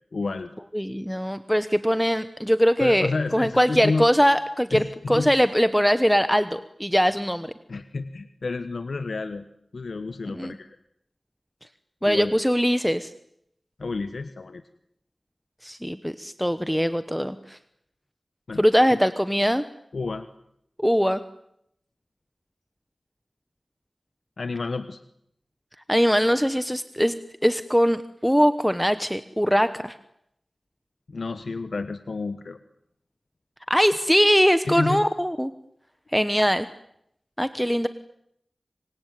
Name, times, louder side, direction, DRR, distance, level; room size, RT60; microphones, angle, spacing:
voice 1, 0.1-0.5 2.8-4.1 4.7-5.3 7.7-9.4 9.7-10.8 12.0-12.3 13.8-14.6 18.5-18.6 18.9-19.0 19.9-20.2 24.4-25.0 31.1-32.6 34.7-35.1, left 3 dB, 80° left, 10 dB, 1.3 m, -30 dB
voice 2, 0.7-7.5 10.3-10.6 12.0-13.1 15.6-17.6 18.6-19.6 20.8-21.2 25.9-29.9 33.7-35.5 36.1-36.7 37.4-37.9, equal, ahead, 11 dB, 1.1 m, -22 dB
26.0 x 24.0 x 9.4 m, 0.76 s
wide cardioid pair, 80°, 0 cm